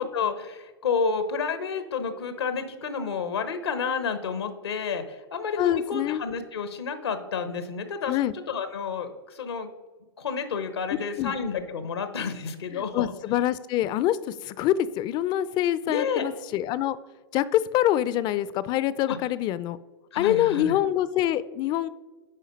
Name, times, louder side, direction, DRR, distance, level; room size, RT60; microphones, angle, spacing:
voice 1, 0.0-5.0 5.3-8.1 8.5-9.7 10.2-13.1 15.9-16.2 19.1-19.2 20.1-20.8, left 5 dB, 85° left, 10 dB, 0.9 m, -30 dB
voice 2, 5.6-6.2 8.1-8.3 11.2-11.3 12.7-17.0 17.3-19.8 20.1-21.9, left 12 dB, 35° left, 17 dB, 0.4 m, -25 dB
10.0 x 3.9 x 5.2 m, 1.3 s
hypercardioid pair, 110°, 13 cm